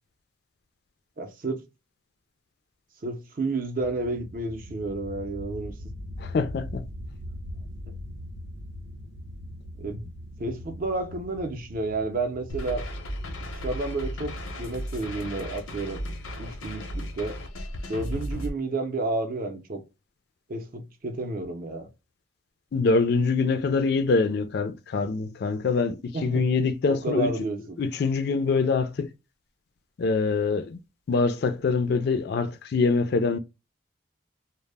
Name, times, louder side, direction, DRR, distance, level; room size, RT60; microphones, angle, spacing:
voice 1, 1.2-1.6 3.0-5.7 9.8-10.1 10.4-12.8 13.5-14.3 14.6-16.0 16.4-17.4 17.9-19.8 20.5-21.9 26.1-26.4 26.9-27.8, right 2 dB, 45° right, 0.5 m, -31 dB
sound 1, 3.8-16.2, left 1 dB, 85° right, 0.6 m, -42 dB
voice 2, 6.2-6.8 22.7-27.3 27.8-29.1 30.0-30.8 31.1-33.4, left 4 dB, 50° left, 0.3 m, -24 dB
sound 2, 12.5-18.5, equal, 90° left, 0.6 m, -35 dB
2.0 x 2.0 x 3.2 m
head